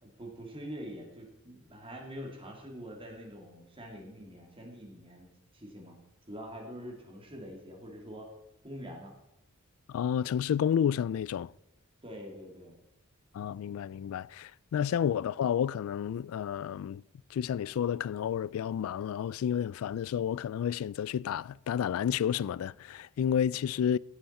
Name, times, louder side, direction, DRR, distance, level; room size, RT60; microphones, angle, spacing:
voice 1, 0.0-6.0 6.3-8.3 8.6-9.1 12.0-12.8, equal, 25° right, 2.4 m, -45 dB
voice 2, 9.9-11.5 13.3-17.0 17.3-24.0, left 8 dB, 75° left, 0.3 m, -30 dB
16.0 x 7.8 x 4.2 m
head